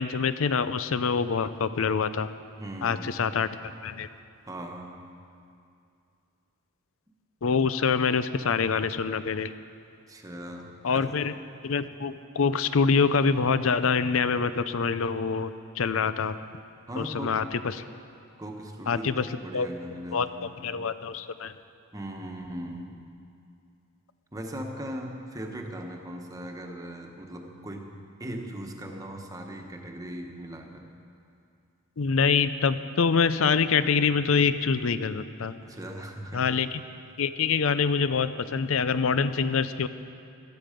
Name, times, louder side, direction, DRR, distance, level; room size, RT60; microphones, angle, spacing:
voice 1, 0.0-2.3 2.8-3.5 3.8-4.1 7.4-9.5 10.8-11.3 11.6-15.5 15.8-16.3 17.0-17.8 18.9-19.3 19.5-19.7 20.1-21.5 32.0-35.5 36.3-36.7 37.2-39.9, left 5 dB, 70° left, 13 dB, 0.6 m, -25 dB
voice 2, 2.6-3.2 4.5-5.1 10.1-11.1 16.9-17.4 18.4-20.6 21.9-23.0 24.3-30.9 35.6-36.5, right 1 dB, 15° right, 2 dB, 1.2 m, -39 dB
16.0 x 13.0 x 5.2 m, 2.5 s
head